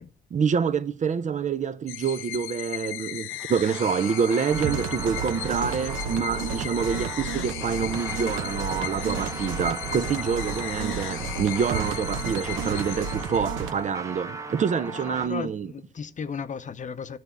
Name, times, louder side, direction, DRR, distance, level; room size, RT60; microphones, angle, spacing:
voice 1, 0.3-15.7, right 6 dB, 40° right, 0.5 m, -27 dB
sound 1, 1.9-13.8, left 14 dB, 85° left, 0.4 m, -37 dB
sound 2, 3.3-15.3, right 3 dB, 15° right, 0.9 m, -38 dB
sound 3, 4.5-13.7, right 6 dB, 80° right, 0.9 m, -33 dB
voice 2, 14.9-17.2, left 6 dB, 40° left, 0.7 m, -35 dB
10.5 x 4.1 x 7.1 m
cardioid pair, 90°, 20 cm